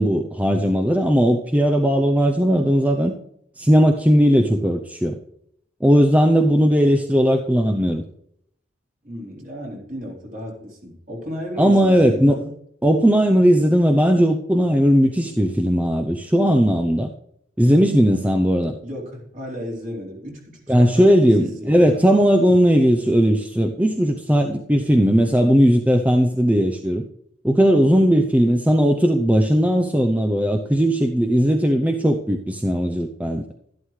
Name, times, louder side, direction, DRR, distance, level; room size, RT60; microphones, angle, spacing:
voice 1, 0.0-3.1 3.6-5.2 5.8-8.0 11.6-12.4 12.8-17.1 17.6-18.7 20.7-27.0 27.4-33.4, equal, 10° right, 3 dB, 0.6 m, -17 dB
voice 2, 9.0-12.5 18.8-22.0 27.8-28.1, equal, 45° right, -2 dB, 3.9 m, -34 dB
12.5 x 11.5 x 3.2 m, 0.73 s
head